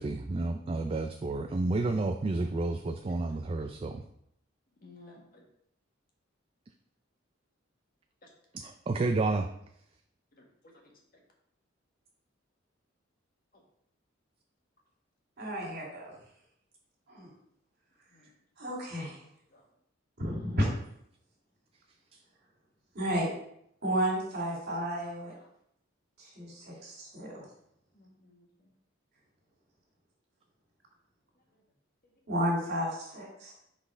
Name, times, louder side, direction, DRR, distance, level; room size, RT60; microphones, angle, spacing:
voice 1, 0.0-4.0 8.5-9.5, right 2 dB, 30° right, 5 dB, 0.4 m, -30 dB
voice 2, 4.8-5.4 8.2-8.3 10.4-11.2 13.5-13.6 18.1-18.3 18.6-18.7 19.5-19.6 25.3-25.5 27.9-28.7, left 2 dB, 50° left, 0 dB, 1.5 m, -57 dB
voice 3, 15.4-16.1 17.1-17.3 18.6-19.2 20.2-20.7 22.9-23.3 23.8-25.3 26.2-27.4 32.3-33.5, equal, 55° right, -2 dB, 2.5 m, -32 dB
5.5 x 4.1 x 5.0 m, 0.73 s
head